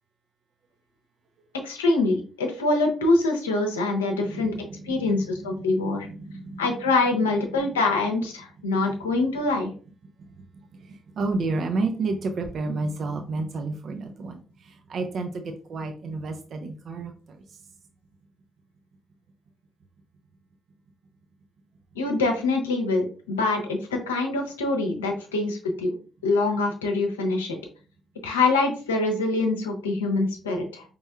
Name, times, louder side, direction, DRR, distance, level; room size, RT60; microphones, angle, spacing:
voice 1, 1.6-4.5 4.8-6.1 6.6-9.7 21.9-25.9 26.2-27.6 28.2-30.8, left 3 dB, 85° left, 0.7 m, -24 dB
voice 2, 4.2-6.8 7.6-7.7 8.8-9.0 10.2-17.6, right 3 dB, 55° right, 0.6 m, -32 dB
5.2 x 3.0 x 2.3 m
figure-of-eight pair, 40°, 0 cm